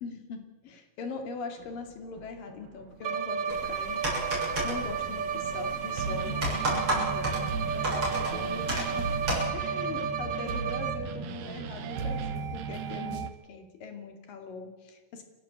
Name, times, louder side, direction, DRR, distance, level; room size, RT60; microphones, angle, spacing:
voice 1, 0.0-9.1 9.5-15.2, left 4 dB, 90° left, 5 dB, 4.3 m, -41 dB
sound 1, 1.6-13.3, right 5 dB, 75° right, 2.8 m, -37 dB
Bowed string instrument, 3.0-11.3, right 6 dB, 60° right, 1.1 m, -33 dB
sound 2, 3.5-9.5, right 1 dB, 40° right, 8.2 m, -33 dB
29.5 x 13.0 x 8.6 m, 1.2 s
omnidirectional pair, 3.8 m